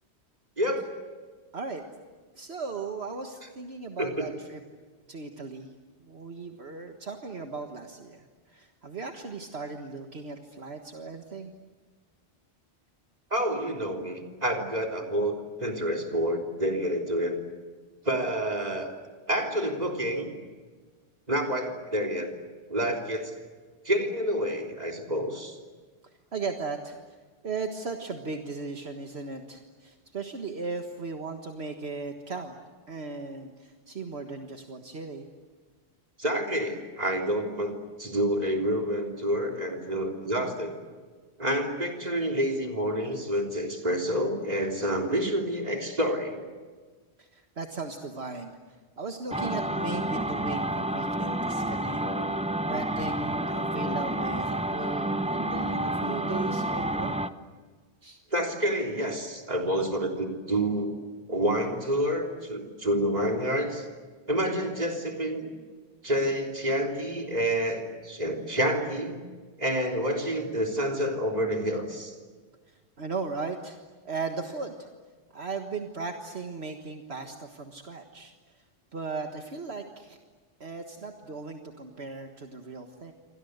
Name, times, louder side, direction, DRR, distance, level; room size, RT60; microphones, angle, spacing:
voice 1, 2.4-4.6 5.1-5.7 6.0-11.5 26.3-27.0 27.4-32.6 32.9-35.3 47.2-48.6 49.0-52.0 52.6-57.2 58.0-58.2 73.0-73.8 74.0-74.9 75.3-78.3 78.9-80.2 80.6-83.1, right 4 dB, 65° right, 4 dB, 1.8 m, -37 dB
voice 2, 13.3-17.4 18.1-19.0 19.3-20.3 21.3-22.3 22.7-23.3 23.9-25.6 36.2-37.7 38.0-40.8 41.4-46.4 52.0-52.3 58.3-60.9 61.3-63.9 64.3-65.5 66.0-69.2 69.6-72.1, equal, 35° right, 1 dB, 3.6 m, -28 dB
sound 1, 49.3-57.3, right 1 dB, 5° right, 0.7 m, -29 dB
28.5 x 25.0 x 8.1 m, 1.5 s
omnidirectional pair, 1.2 m